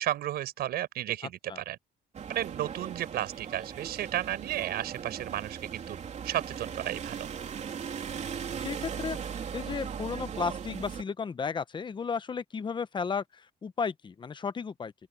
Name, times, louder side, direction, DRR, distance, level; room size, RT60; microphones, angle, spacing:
voice 1, 0.0-1.8 2.3-6.0 6.2-7.3, right 13 dB, 70° right, 5.0 m, -33 dB
sound 1, 2.1-11.0, right 7 dB, 45° right, 3.3 m, -38 dB
voice 2, 8.6-9.2 9.5-13.2 13.6-14.9, left 5 dB, 30° left, 0.9 m, -33 dB
open air
cardioid pair, 110°, 17 cm